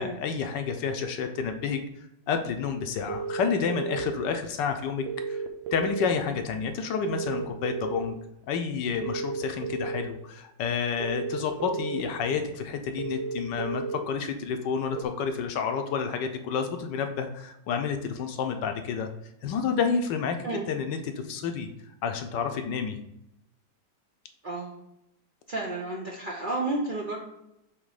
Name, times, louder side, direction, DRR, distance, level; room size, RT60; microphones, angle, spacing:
voice 1, 0.0-1.8 2.3-5.4 5.7-8.2 8.5-19.1 19.4-21.0 21.3-21.7 22.0-23.0, left 6 dB, 70° left, 6 dB, 1.2 m, -29 dB
sound 1, 3.1-4.1 5.1-6.1 7.0-8.1 9.0-10.0 11.0-12.0 13.0-14.0 15.0-15.1, right 6 dB, 85° right, 1.4 m, -33 dB
voice 2, 24.4-24.8 25.5-27.2, right 2 dB, 65° right, -3 dB, 0.4 m, -31 dB
7.3 x 3.1 x 4.8 m, 0.85 s
omnidirectional pair, 2.1 m